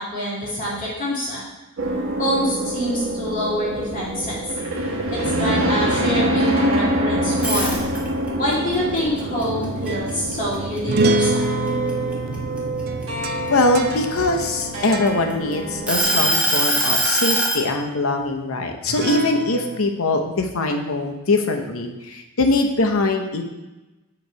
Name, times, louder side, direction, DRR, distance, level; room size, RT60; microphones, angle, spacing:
voice 1, 0.0-1.4 2.2-4.4 5.1-7.8 8.4-11.4, equal, 40° left, -7 dB, 2.2 m, -26 dB
sound 1, 1.8-16.3, right 1 dB, 65° right, 1.1 m, -25 dB
sound 2, 7.3-8.3 8.7-10.5 11.0-11.2 11.7-13.5 14.2-15.3 15.9-17.6, right 1 dB, 5° right, 0.9 m, -21 dB
sound 3, 9.4-15.8 16.1-16.5 18.9-19.8, right 2 dB, 45° right, 0.3 m, -27 dB
voice 2, 13.5-23.4, left 2 dB, 75° left, 4 dB, 0.8 m, -22 dB
7.7 x 3.1 x 4.7 m, 1.0 s
head